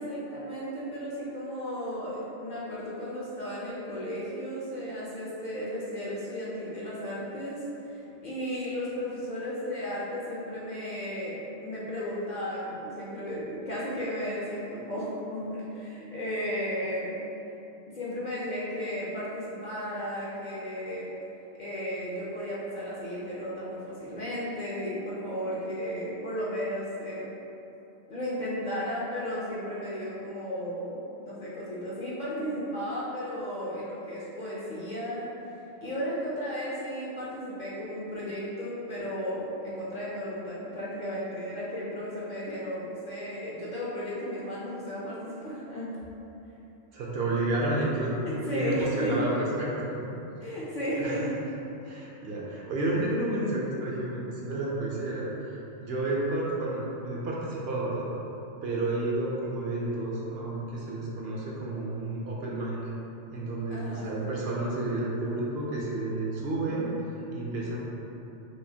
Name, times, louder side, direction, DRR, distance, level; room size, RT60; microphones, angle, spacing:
voice 1, 0.0-17.2 17.9-21.1 21.6-27.2 28.1-35.3 35.8-45.9 48.2-49.2 50.4-51.3 63.7-64.2, equal, 50° left, -8 dB, 0.7 m, -34 dB
voice 2, 46.9-48.1 48.4-50.1 51.0-51.1 51.8-58.1 58.6-62.8 63.3-67.9, right 2 dB, 60° right, -5 dB, 0.8 m, -31 dB
4.8 x 2.5 x 2.7 m, 2.9 s
omnidirectional pair, 1.2 m